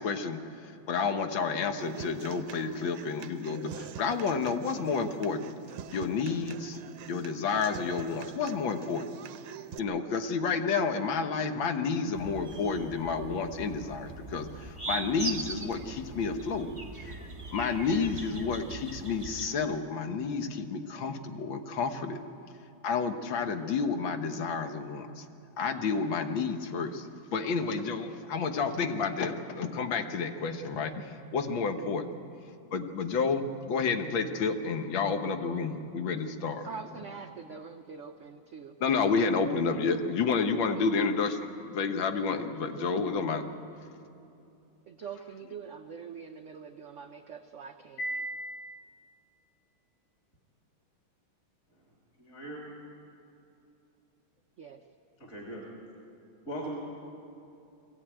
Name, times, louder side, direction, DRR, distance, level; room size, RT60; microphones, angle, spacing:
voice 1, 0.0-5.5 5.9-6.8 7.1-9.1 9.8-16.7 16.9-17.2 17.5-22.2 22.8-25.3 25.6-32.1 32.7-36.7 38.8-43.4 48.0-48.8, left 5 dB, 70° left, 7 dB, 1.9 m, -30 dB
Human voice / Acoustic guitar, 1.8-9.8, right 9 dB, 85° right, 1.6 m, -46 dB
sound 1, 12.1-19.5, right 3 dB, 15° right, 1.3 m, -41 dB
voice 2, 36.6-38.8 40.7-40.9 44.9-48.0 54.6-54.8, right 6 dB, 65° right, 5 dB, 0.7 m, -44 dB
voice 3, 52.2-52.7 55.2-55.6 56.5-56.8, right 1 dB, 35° left, -2 dB, 3.4 m, -39 dB
22.0 x 15.5 x 9.0 m, 2.7 s
omnidirectional pair, 2.3 m